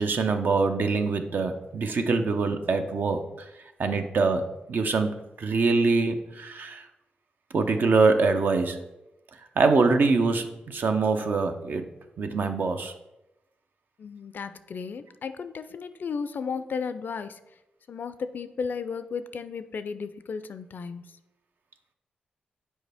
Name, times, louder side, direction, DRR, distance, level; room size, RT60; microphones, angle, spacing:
voice 1, 0.0-3.2 3.8-4.4 4.7-6.9 7.5-8.8 9.6-11.8 12.2-12.9, right 4 dB, 65° right, 6 dB, 0.6 m, -24 dB
voice 2, 14.0-17.4 17.9-21.2, left 5 dB, 65° left, 12 dB, 0.4 m, -34 dB
6.3 x 4.5 x 3.4 m, 0.94 s
cardioid pair, 55°, 3 cm